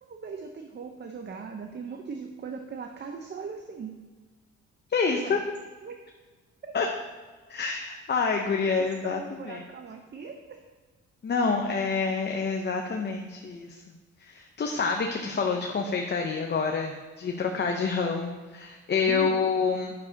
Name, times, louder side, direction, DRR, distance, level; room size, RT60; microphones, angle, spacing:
voice 1, 0.0-3.9 5.1-5.4 5.8-6.0 6.6-6.7 9.0-10.6 19.1-19.5, right 5 dB, 35° right, 4 dB, 0.7 m, -39 dB
voice 2, 4.9-5.4 6.7-6.9 7.5-9.6 11.2-13.8 14.2-19.9, left 5 dB, 35° left, 2 dB, 0.8 m, -27 dB
9.6 x 6.6 x 2.8 m, 1.3 s
cardioid pair, 90°, 30 cm